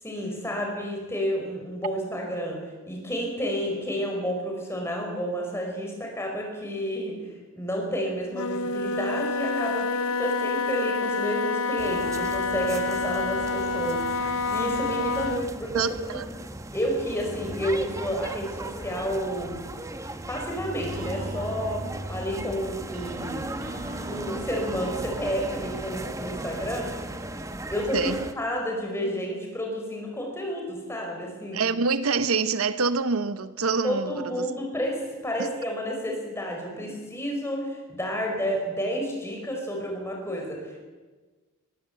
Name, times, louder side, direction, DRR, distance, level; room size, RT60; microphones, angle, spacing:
voice 1, 0.0-7.2 7.5-16.2 16.7-19.6 20.3-23.5 24.0-26.9 27.7-31.6 33.8-40.8, equal, 10° left, 5.0 m, -30 dB
Wind instrument woodwind instrument, 8.3-15.5, left 3 dB, 75° left, 0.7 m, -28 dB
sound 1, 11.8-28.3, right 1 dB, 15° right, 1.0 m, -37 dB
voice 2, 15.7-16.2 27.9-28.2 31.5-34.5 35.4-35.5, right 4 dB, 75° right, 0.8 m, -26 dB
sound 2, 20.6-27.3, right 1 dB, 40° right, 3.4 m, -40 dB
21.5 x 16.0 x 8.0 m
head